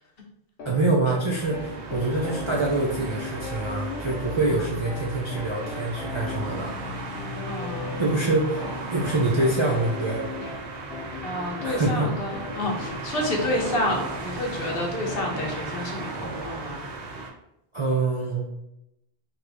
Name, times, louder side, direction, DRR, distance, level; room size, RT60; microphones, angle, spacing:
sound 1, 0.6-15.6, left 4 dB, 85° left, 0.9 m, -38 dB
voice 1, 0.6-6.7 8.0-10.2 11.6-12.2 12.7-12.8 17.7-18.5, right 2 dB, 50° right, -3 dB, 0.3 m, -25 dB
sound 2, 1.3-17.3, right 3 dB, 80° right, 0.9 m, -35 dB
voice 2, 7.5-8.1 11.2-16.8, left 1 dB, 60° left, 0 dB, 0.9 m, -29 dB
2.9 x 2.5 x 3.3 m, 0.85 s
omnidirectional pair, 1.1 m